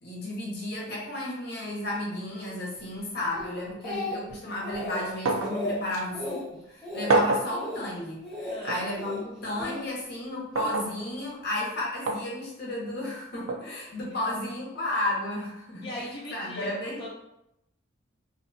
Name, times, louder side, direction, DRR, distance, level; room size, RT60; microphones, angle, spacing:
voice 1, 0.0-15.9 16.3-17.0, left 1 dB, 50° left, -3 dB, 0.7 m, -33 dB
Speech, 3.3-4.3 4.6-5.0 5.4-5.8 6.1-6.4 6.8-7.1 7.5-7.8 8.2-8.6 9.0-9.8 10.5-10.8, left 1 dB, ahead, 0.9 m, -34 dB
Glass Clink, 5.3-5.6 5.9-6.0 7.1-7.5 8.7-8.8 10.6-10.9 12.1-12.3 13.5-13.6, right 2 dB, 75° right, 0.4 m, -26 dB
voice 2, 8.5-8.8 15.8-17.1, equal, 25° left, -7 dB, 0.4 m, -38 dB
2.5 x 2.3 x 2.6 m, 0.84 s
head